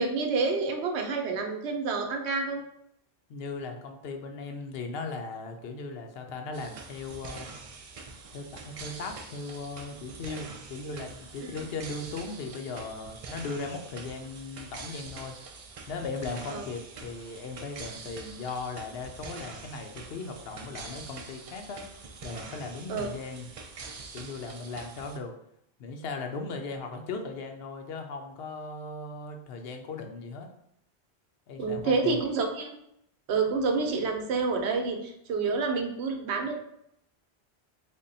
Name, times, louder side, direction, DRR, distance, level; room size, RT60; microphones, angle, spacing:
voice 1, 0.0-2.6 11.4-11.5 16.5-16.6 22.9-23.1 31.6-32.8 33.3-36.5, right 4 dB, 90° right, 4 dB, 0.9 m, -28 dB
voice 2, 3.3-7.5 8.3-15.4 15.9-21.8 22.2-23.5 24.1-25.3 25.8-30.5 31.5-32.2, left 3 dB, 70° left, 4 dB, 0.8 m, -38 dB
sound 1, 6.5-25.2, right 4 dB, 55° right, 0.4 m, -45 dB
3.5 x 2.2 x 3.9 m, 0.75 s
omnidirectional pair, 1.1 m